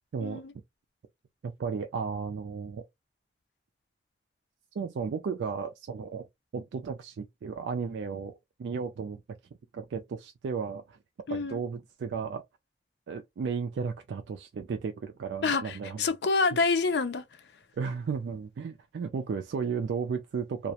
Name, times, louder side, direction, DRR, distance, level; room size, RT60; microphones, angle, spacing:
voice 1, 0.2-0.5 11.3-11.6 15.4-17.2, left 4 dB, 80° left, 0.5 m, -27 dB
voice 2, 1.4-2.8 4.8-6.3 6.5-8.3 8.6-9.2 9.7-11.0 11.3-12.4 13.1-16.0 17.8-20.7, right 5 dB, 85° right, 0.3 m, -34 dB
2.3 x 2.1 x 2.8 m
head